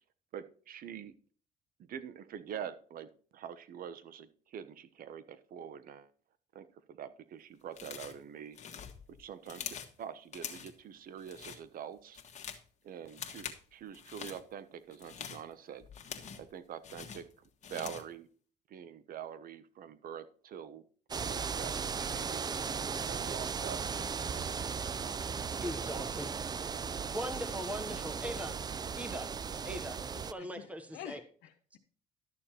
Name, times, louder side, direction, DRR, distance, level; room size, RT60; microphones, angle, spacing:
voice 1, 0.3-1.1 1.8-6.1 6.5-8.6 9.2-12.2 12.8-15.9 16.3-17.2 17.7-18.3 18.7-20.8 21.1-22.5 22.9-23.8, right 8 dB, 60° right, 13 dB, 1.1 m, -45 dB
sound 1, 7.7-8.2 8.5-10.0 10.3-10.8 11.2-11.6 12.0-12.7 13.1-13.6 13.9-14.4 14.9-16.5 16.8-18.1, left 7 dB, 45° left, 1.6 m, -44 dB
sound 2, 21.1-30.3, right 6 dB, 25° right, 0.4 m, -37 dB
voice 2, 25.6-26.3 27.1-28.6 29.0-29.3 29.6-30.0 30.3-31.2, equal, 10° right, 8 dB, 1.2 m, -40 dB
voice 3, 30.4-31.8, left 11 dB, 90° left, 6 dB, 1.0 m, -49 dB
12.0 x 6.9 x 4.4 m, 0.42 s
cardioid pair, 110°, 17 cm